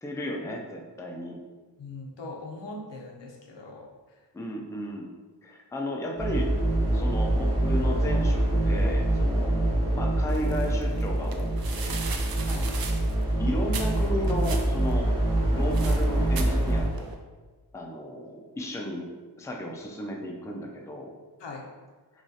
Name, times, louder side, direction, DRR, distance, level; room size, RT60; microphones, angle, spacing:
voice 1, 0.0-1.4 4.3-5.1 5.4-6.5 6.9-12.0 13.4-15.1 15.5-17.2 17.7-19.1 19.4-21.1, left 1 dB, 10° left, 0 dB, 0.4 m, -34 dB
voice 2, 1.8-3.8 12.4-12.7 21.4-21.6, left 2 dB, 85° left, -1 dB, 0.9 m, -40 dB
sound 1, 6.2-16.8, right 1 dB, 35° right, 1.5 m, -25 dB
sound 2, 10.3-17.2, right 4 dB, 60° right, 0.5 m, -40 dB
6.1 x 2.4 x 2.7 m, 1.3 s
wide cardioid pair, 155°, 42 cm